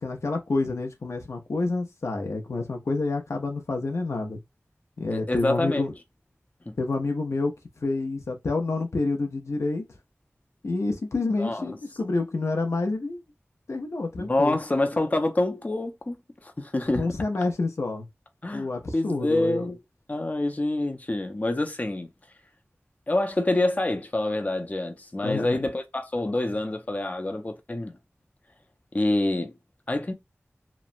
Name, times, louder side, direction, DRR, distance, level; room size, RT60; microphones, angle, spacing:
voice 1, 0.0-4.4 5.0-5.9 6.8-7.5 7.8-9.8 10.6-13.2 13.7-14.6 17.0-18.1 18.5-19.7 25.2-25.6, left 3 dB, 85° left, 0.5 m, -28 dB
voice 2, 5.1-5.9 6.7-6.8 11.4-11.8 14.2-16.2 16.4-17.1 18.4-19.8 20.1-22.1 23.1-28.0 28.9-29.5 29.9-30.1, left 2 dB, 35° left, 0.5 m, -26 dB
3.0 x 2.1 x 2.5 m
wide cardioid pair, 45°, 5 cm